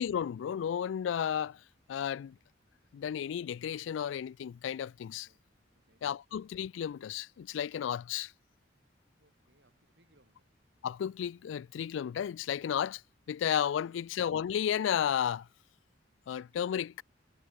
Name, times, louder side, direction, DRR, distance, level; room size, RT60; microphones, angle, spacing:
voice 1, 0.0-1.6 1.9-2.4 2.9-5.3 6.0-8.3 10.8-13.0 13.3-15.5 16.3-17.0, left 9 dB, 85° left, 0.3 m, -33 dB
voice 2, 5.1-6.1 9.2-10.5 13.8-14.0, right 1 dB, 65° right, 6.4 m, -70 dB
head